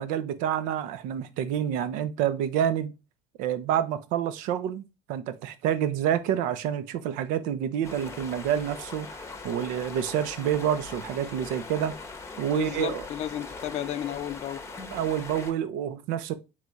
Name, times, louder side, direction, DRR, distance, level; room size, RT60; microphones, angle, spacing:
voice 1, 0.0-2.9 3.4-12.0 12.4-13.1 14.9-16.3, right 10 dB, 70° right, 0.5 m, -28 dB
sound 1, 7.8-15.5, left 3 dB, 20° left, 0.8 m, -41 dB
voice 2, 12.5-14.6, left 11 dB, 55° left, 0.5 m, -33 dB
3.4 x 3.2 x 3.8 m
supercardioid pair, 90°, 14 cm